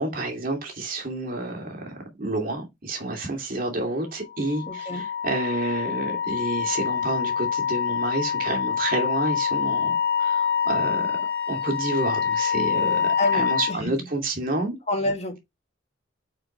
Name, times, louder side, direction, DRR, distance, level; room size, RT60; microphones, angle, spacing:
voice 1, 0.0-11.2 11.5-14.8, right 2 dB, 50° right, 2.6 m, -29 dB
Wind instrument woodwind instrument, 4.3-13.8, left 7 dB, 55° left, 1.5 m, -26 dB
voice 2, 4.7-5.0 13.2-13.9 14.9-15.4, left 1 dB, 35° left, 1.8 m, -28 dB
8.1 x 4.7 x 3.3 m
head